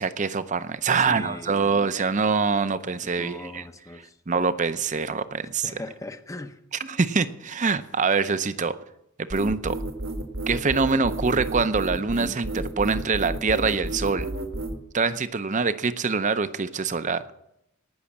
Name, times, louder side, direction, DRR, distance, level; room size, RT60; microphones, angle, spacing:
voice 1, 0.0-3.7 4.3-5.8 6.8-8.8 9.3-9.8 10.5-14.3 14.9-17.2, right 4 dB, 35° right, 13 dB, 0.6 m, -24 dB
voice 2, 1.1-1.8 3.0-4.1 5.6-6.6, left 2 dB, 15° left, 9 dB, 0.7 m, -39 dB
sound 1, 9.3-14.8, right 1 dB, 70° right, 1.6 m, -31 dB
18.5 x 6.4 x 7.1 m, 0.81 s
head